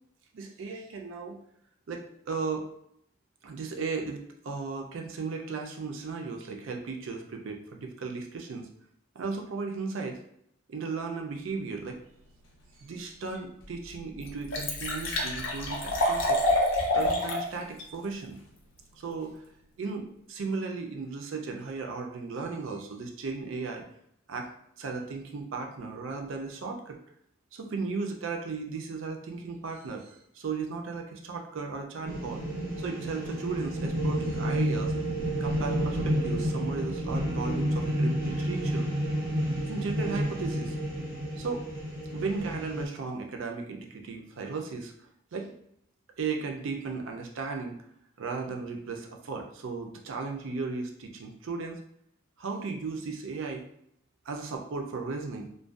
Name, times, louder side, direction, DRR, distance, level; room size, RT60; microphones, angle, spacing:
voice 1, 0.3-1.4 1.9-2.7 3.4-8.7 9.2-10.2 10.7-12.0 12.8-16.4 16.9-18.4 18.9-19.4 19.8-23.8 24.3-24.5 24.8-27.0 27.5-32.4 32.8-34.9 35.4-38.9 39.7-40.8 41.4-41.7 42.1-44.9 45.3-45.5 46.2-47.7 48.2-51.8 52.4-53.6 54.3-55.5, right 4 dB, 70° right, 2 dB, 0.4 m, -35 dB
Liquid, 13.4-13.5 13.9-14.0 14.2-17.4 17.8-17.9, left 1 dB, 65° left, 0.5 m, -27 dB
sound 1, 32.1-42.8, equal, 10° right, 0.6 m, -30 dB
2.5 x 2.2 x 2.3 m, 0.71 s
head